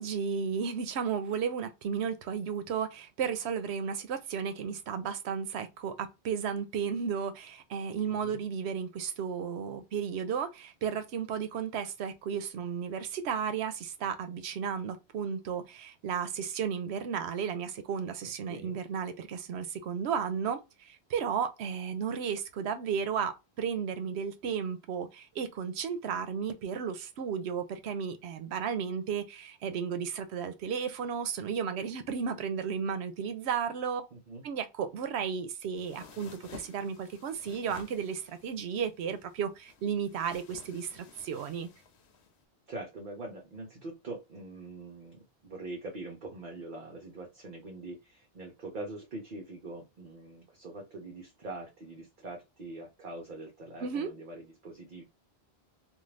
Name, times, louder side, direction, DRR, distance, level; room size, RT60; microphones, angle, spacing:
voice 1, 0.0-34.0 34.4-41.7 53.8-54.1, right 7 dB, 90° right, 0.9 m, -34 dB
voice 2, 8.1-8.4 18.5-18.7 34.1-34.4 42.7-55.0, right 2 dB, 55° right, 0.8 m, -43 dB
sound 1, 35.7-42.4, left 6 dB, 80° left, 0.9 m, -53 dB
2.6 x 2.3 x 3.1 m
omnidirectional pair, 1.1 m